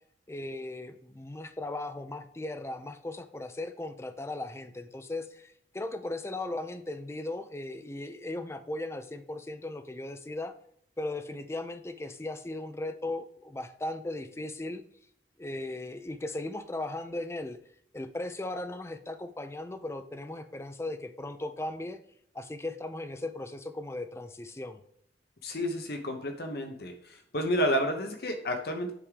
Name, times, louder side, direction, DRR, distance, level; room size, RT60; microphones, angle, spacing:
voice 1, 0.3-10.5 11.0-14.8 15.4-17.6 17.9-22.0 22.3-24.8, left 2 dB, 15° left, 8 dB, 0.5 m, -37 dB
voice 2, 25.4-26.9 27.3-28.9, equal, 60° left, 4 dB, 0.9 m, -30 dB
9.9 x 3.6 x 3.3 m, 0.68 s
head